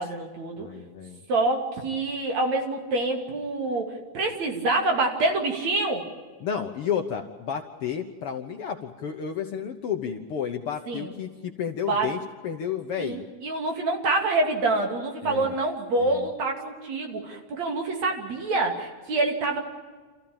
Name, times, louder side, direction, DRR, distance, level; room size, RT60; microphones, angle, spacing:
voice 1, 0.0-0.7 1.3-3.9 4.1-6.0 10.9-11.1 11.9-12.1 13.0-19.6, right 2 dB, 65° right, 2 dB, 3.9 m, -26 dB
voice 2, 0.6-1.2 6.4-13.2 15.2-15.5 16.0-16.2, left 8 dB, 60° left, 5 dB, 1.6 m, -32 dB
28.0 x 14.5 x 8.8 m, 1.4 s
omnidirectional pair, 3.5 m